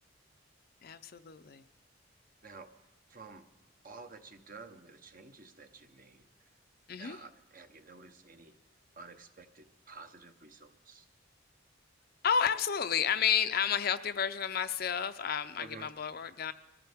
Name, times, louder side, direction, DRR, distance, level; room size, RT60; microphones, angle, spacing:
voice 1, 0.8-1.6 6.9-7.2 12.2-16.5, left 7 dB, 50° left, 10 dB, 0.5 m, -31 dB
voice 2, 3.1-3.4 3.8-6.2 7.0-8.5 9.0-11.0 15.6-15.9, right 4 dB, 45° right, 7 dB, 0.9 m, -51 dB
23.5 x 14.5 x 3.6 m, 0.97 s
head